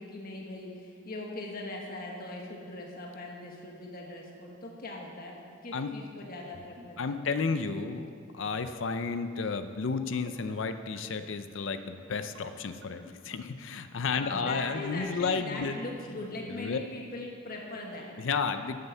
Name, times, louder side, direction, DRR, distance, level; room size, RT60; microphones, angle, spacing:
voice 1, 0.0-5.4 5.6-7.2 14.1-18.2, left 2 dB, 50° left, -1 dB, 1.4 m, -40 dB
sound 1, 6.4-6.9 7.2-7.5 8.3-8.8 9.1-9.4 10.1-10.5 11.0-11.3 12.0-12.4 12.8-13.2, right 1 dB, 85° right, 1.5 m, -52 dB
voice 2, 7.0-15.8 16.5-16.8 18.2-18.8, left 5 dB, 65° left, 9 dB, 0.5 m, -32 dB
11.0 x 7.7 x 7.0 m, 2.3 s
head